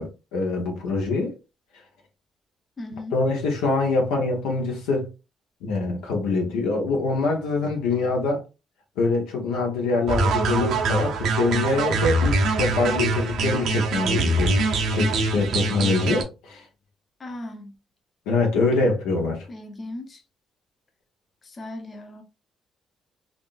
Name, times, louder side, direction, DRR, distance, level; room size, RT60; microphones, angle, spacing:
voice 1, 0.0-1.3 3.1-5.1 5.6-8.4 9.0-14.6 14.9-16.6 18.3-19.5, left 3 dB, 85° left, 0.8 m, -24 dB
voice 2, 2.8-3.2 17.2-17.7 19.5-20.2 21.4-22.2, left 1 dB, 40° left, 0.8 m, -37 dB
sound 1, 10.1-16.2, right 3 dB, 75° right, 0.6 m, -23 dB
3.5 x 2.5 x 2.4 m
supercardioid pair, 60°, 0 cm